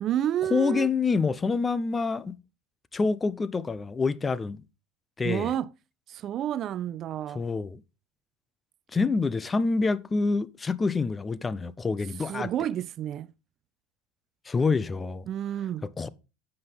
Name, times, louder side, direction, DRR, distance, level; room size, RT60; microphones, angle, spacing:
voice 1, 0.0-0.9 5.2-5.7 6.1-7.4 12.2-13.3 15.3-15.9, right 11 dB, 45° right, 0.4 m, -30 dB
voice 2, 0.5-2.4 2.9-4.6 5.2-5.5 7.3-7.8 8.9-12.5 14.5-15.3 16.0-16.1, left 4 dB, 20° left, 0.7 m, -27 dB
9.5 x 7.8 x 3.5 m
hypercardioid pair, 85°, 0 cm